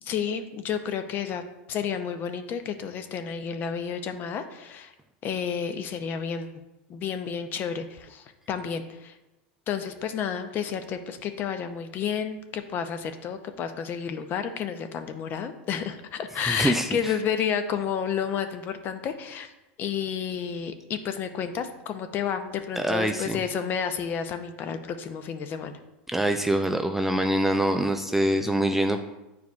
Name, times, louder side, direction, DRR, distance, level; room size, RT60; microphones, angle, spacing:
voice 1, 0.0-1.4 1.7-4.9 5.2-6.5 6.9-9.2 9.7-19.5 19.8-25.8, left 7 dB, 40° left, 8 dB, 0.6 m, -31 dB
voice 2, 16.5-17.1 22.8-23.4 26.1-29.0, right 1 dB, 5° right, 6 dB, 0.3 m, -24 dB
9.1 x 4.7 x 2.4 m, 0.96 s
supercardioid pair, 125°, 5 cm